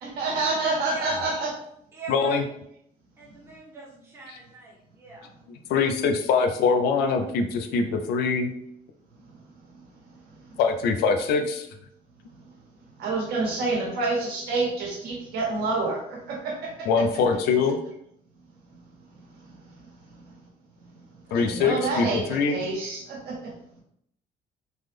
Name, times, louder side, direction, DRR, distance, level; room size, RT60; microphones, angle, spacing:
voice 1, 0.0-1.5 13.0-16.9 21.3-23.4, right 3 dB, 70° right, -2 dB, 1.2 m, -28 dB
voice 2, 0.9-1.2 1.9-2.4 3.2-5.3, right 3 dB, 15° right, -5 dB, 0.7 m, -41 dB
voice 3, 2.1-2.4 4.3-4.4 5.5-8.5 10.6-11.7 16.9-17.8 21.3-22.6, left 5 dB, 90° left, 6 dB, 0.5 m, -23 dB
3.4 x 2.1 x 3.3 m, 0.71 s
cardioid pair, 165°, 16 cm